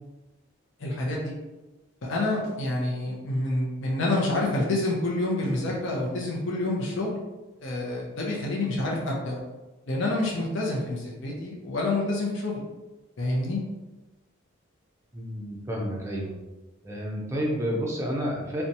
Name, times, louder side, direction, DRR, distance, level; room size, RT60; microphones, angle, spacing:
voice 1, 0.8-1.3 2.0-7.2 7.6-9.4 9.9-12.6 13.2-13.6, left 2 dB, 60° left, -2 dB, 0.5 m, -28 dB
sound 1, 2.4-2.7 5.4-5.7 8.3-8.6, left 1 dB, 90° right, 0.5 m, -45 dB
voice 2, 15.1-16.3 16.8-18.6, equal, 15° right, -3 dB, 0.5 m, -30 dB
2.8 x 2.2 x 2.6 m, 1.1 s
head